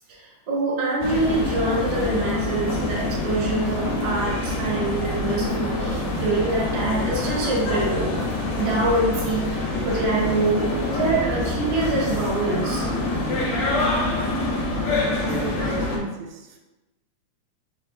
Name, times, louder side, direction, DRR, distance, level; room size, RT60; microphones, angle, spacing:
voice 1, 0.1-8.1 8.5-12.9, right 2 dB, 50° right, -5 dB, 1.3 m, -25 dB
sound 1, 1.0-16.0, left 2 dB, 80° left, 2.1 m, -26 dB
voice 2, 14.6-16.6, right 5 dB, 85° right, 1 dB, 1.9 m, -36 dB
4.7 x 3.2 x 2.4 m, 1.1 s
omnidirectional pair, 3.3 m